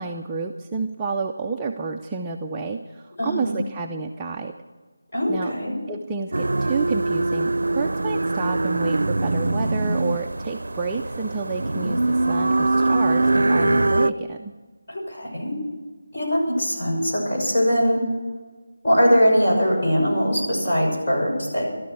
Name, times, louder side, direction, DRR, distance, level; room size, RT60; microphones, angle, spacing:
voice 1, 0.0-4.5 5.3-5.5 5.9-14.5, right 4 dB, 10° right, -1 dB, 0.5 m, -30 dB
voice 2, 3.2-3.6 5.1-5.8 14.9-15.6 16.1-18.0 18.8-21.7, equal, 35° left, -4 dB, 6.2 m, -21 dB
sound 1, 6.3-14.1, right 2 dB, 80° right, 0.5 m, -22 dB
13.5 x 13.0 x 6.8 m, 1.3 s
figure-of-eight pair, 175°, 0 cm